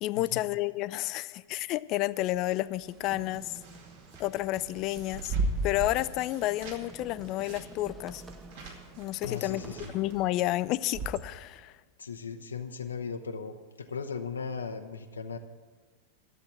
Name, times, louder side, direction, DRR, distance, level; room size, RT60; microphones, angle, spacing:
voice 1, 0.0-3.6 4.2-5.4 5.6-8.2 9.0-9.6 9.9-11.7, left 16 dB, 40° left, 17 dB, 0.4 m, -30 dB
sound 1, 2.2-10.3, right 4 dB, 55° right, 2.3 m, -52 dB
Bird / Wind, 2.9-11.6, right 3 dB, 35° right, 1.1 m, -37 dB
sound 2, 3.0-11.1, right 3 dB, 15° right, 0.7 m, -50 dB
voice 2, 9.2-10.0 12.0-15.4, left 5 dB, 75° left, 6 dB, 0.7 m, -37 dB
12.5 x 7.8 x 8.5 m, 1.4 s
figure-of-eight pair, 90°, 0 cm